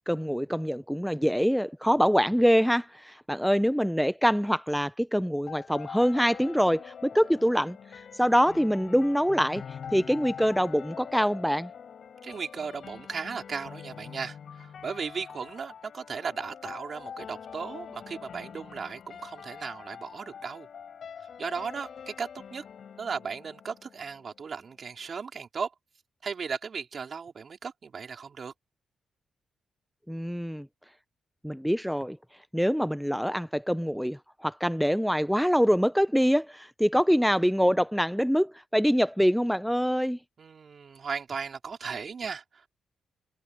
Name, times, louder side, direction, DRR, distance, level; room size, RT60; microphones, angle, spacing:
voice 1, 0.1-11.7 30.1-30.7 31.4-32.2 32.5-40.2, equal, ahead, 0.4 m, -25 dB
sound 1, 5.5-24.4, left 7 dB, 55° left, 3.9 m, -44 dB
voice 2, 12.2-20.7 21.4-22.6 23.0-25.7 26.2-28.5 40.4-42.7, right 5 dB, 45° right, 4.0 m, -36 dB
cardioid pair, 125°, 0 cm